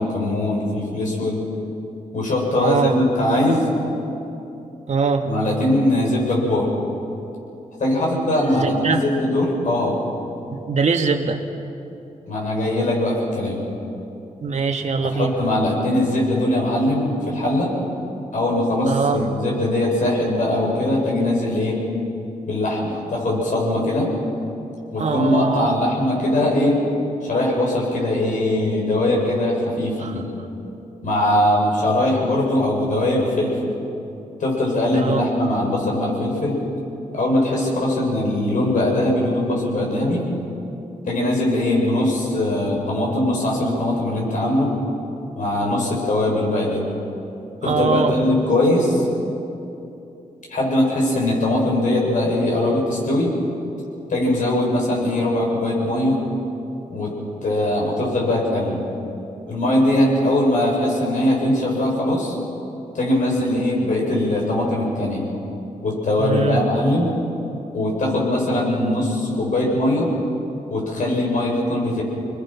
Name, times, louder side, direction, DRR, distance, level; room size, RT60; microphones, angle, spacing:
voice 1, 0.0-1.4 2.1-3.7 5.2-6.7 7.8-10.0 12.3-13.6 15.0-17.7 18.3-21.8 22.5-24.1 24.9-26.8 27.2-30.2 31.0-33.7 34.4-36.6 37.1-40.2 41.0-44.7 45.3-46.9 47.6-49.1 50.5-53.3 54.1-56.2 56.9-57.1 57.4-58.8 59.5-62.3 62.9-65.3 65.8-67.1 67.7-70.1 70.7-72.0, left 1 dB, 65° left, -3 dB, 7.9 m, -21 dB
voice 2, 2.6-2.9 4.9-5.2 8.5-9.0 10.5-11.4 14.4-15.3 18.9-19.2 25.0-25.8 34.9-35.2 47.6-48.1 66.2-66.6, right 5 dB, 55° right, 3 dB, 2.1 m, -22 dB
28.0 x 21.0 x 6.1 m, 2.9 s
cardioid pair, 80°, 14 cm